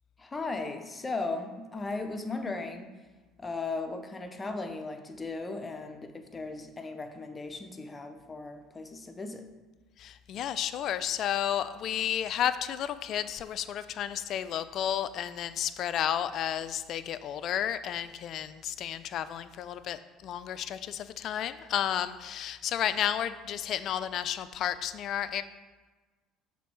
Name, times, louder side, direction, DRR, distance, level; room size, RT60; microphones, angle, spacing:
voice 1, 0.2-2.9 3.4-9.5, left 3 dB, 25° left, 7 dB, 0.7 m, -37 dB
voice 2, 10.0-25.4, left 10 dB, 55° left, 13 dB, 0.3 m, -32 dB
5.9 x 3.6 x 4.7 m, 1.3 s
hypercardioid pair, 65°, 0 cm